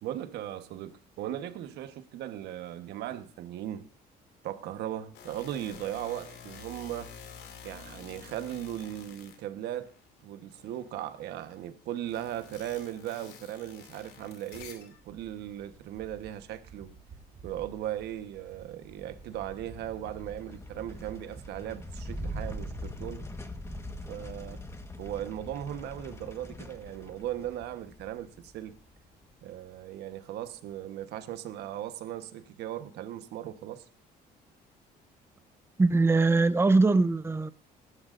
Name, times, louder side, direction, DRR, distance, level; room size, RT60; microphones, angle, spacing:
voice 1, 0.0-3.9 4.4-7.1 7.6-9.9 10.2-16.9 17.4-23.3 24.1-24.6 25.0-28.7 29.4-33.9, right 12 dB, 80° right, 1.2 m, -38 dB
sound 1, 5.1-10.1 10.5-15.0, left 7 dB, 85° left, 2.6 m, -49 dB
sound 2, 14.9-23.5, right 5 dB, 45° right, 3.3 m, -53 dB
sound 3, 18.9-29.4, equal, 15° left, 1.4 m, -42 dB
voice 2, 35.8-37.5, right 3 dB, 15° right, 0.7 m, -22 dB
18.0 x 11.5 x 2.6 m
cardioid pair, 110°, 17 cm